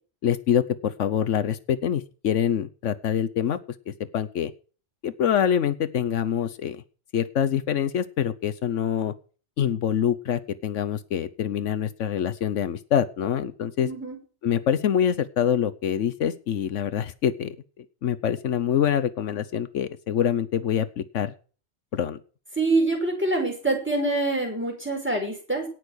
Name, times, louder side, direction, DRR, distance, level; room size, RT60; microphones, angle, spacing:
voice 1, 0.2-3.6 3.9-4.5 5.0-6.8 7.1-9.1 9.6-13.9 14.4-21.3 21.9-22.2, left 9 dB, 80° left, 12 dB, 1.1 m, -25 dB
voice 2, 13.8-14.2 22.6-25.7, right 2 dB, 10° right, 1 dB, 5.2 m, -25 dB
18.0 x 6.3 x 6.5 m, 0.38 s
omnidirectional pair, 1.3 m